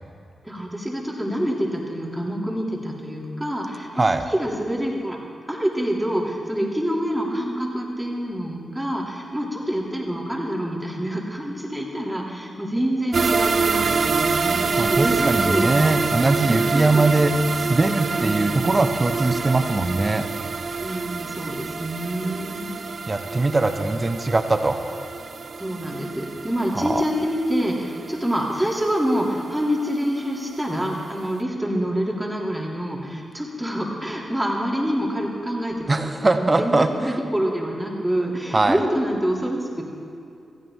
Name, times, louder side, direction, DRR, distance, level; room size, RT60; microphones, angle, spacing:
voice 1, 0.4-5.2 5.5-15.8 16.3-17.4 18.0-18.5 20.8-22.7 25.6-36.7 37.0-39.9, equal, 10° right, -3 dB, 2.9 m, -26 dB
sound 1, 13.1-30.2 30.5-30.6 31.0-31.1, right 4 dB, 60° right, 0.5 m, -26 dB
voice 2, 14.8-17.3 17.6-20.3 23.1-24.8 26.7-27.0 35.9-37.2 38.5-38.8, right 2 dB, 35° right, 8 dB, 1.1 m, -21 dB
17.0 x 14.5 x 3.7 m, 2.5 s
supercardioid pair, 50°, 0 cm